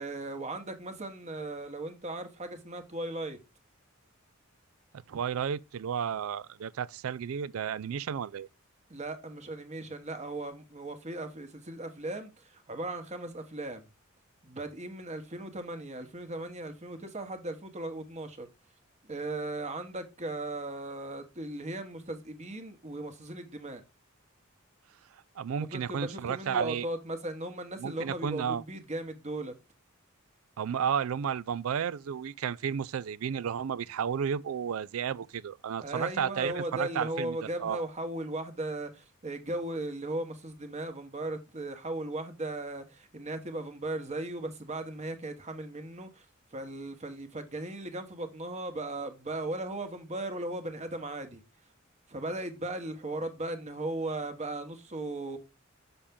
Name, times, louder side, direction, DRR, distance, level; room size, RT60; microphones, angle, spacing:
voice 1, 0.0-3.4 8.9-13.9 14.4-18.5 19.0-23.8 25.6-29.5 35.8-46.2 46.5-51.4 52.1-55.4, right 2 dB, 35° right, 1.3 m, -37 dB
voice 2, 5.1-8.5 25.4-26.9 27.8-28.6 30.6-37.8, right 7 dB, 90° right, 0.4 m, -32 dB
6.7 x 5.7 x 3.6 m
head